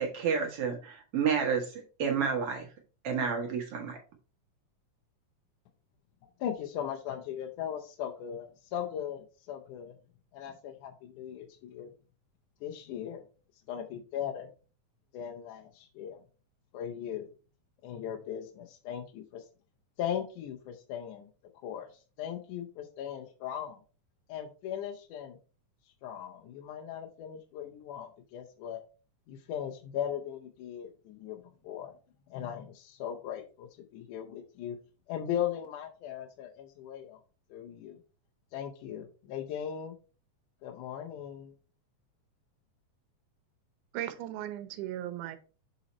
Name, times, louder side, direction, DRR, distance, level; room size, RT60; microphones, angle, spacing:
voice 1, 0.0-2.7 3.0-4.0, right 6 dB, 60° right, 3 dB, 1.7 m, -30 dB
voice 2, 6.4-10.0 10.3-11.9 12.6-13.2 13.7-14.5 15.1-16.2 16.7-17.3 17.8-19.5 20.0-21.3 21.6-23.8 24.3-25.4 26.0-28.8 29.3-31.9 32.3-34.8 35.1-37.2 37.5-38.0 38.5-40.0 40.6-41.5, left 9 dB, 80° left, 3 dB, 2.2 m, -38 dB
voice 3, 43.9-45.4, right 12 dB, 80° right, 11 dB, 2.3 m, -37 dB
6.9 x 4.0 x 4.2 m, 0.36 s
omnidirectional pair, 3.5 m